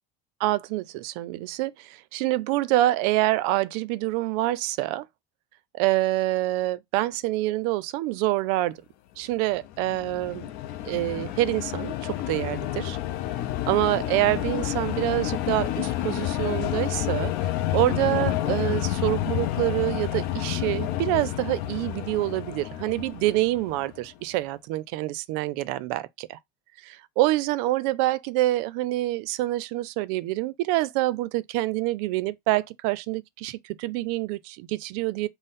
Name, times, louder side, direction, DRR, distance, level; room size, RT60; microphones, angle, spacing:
voice 1, 0.4-5.1 5.7-8.8 9.2-10.5 10.8-13.0 13.7-17.3 17.7-26.4 26.8-35.3, right 17 dB, 70° right, 0.4 m, -26 dB
sound 1, 9.5-24.0, left 13 dB, 50° left, 0.4 m, -29 dB
5.4 x 2.0 x 4.0 m
cardioid pair, 165°, 20 cm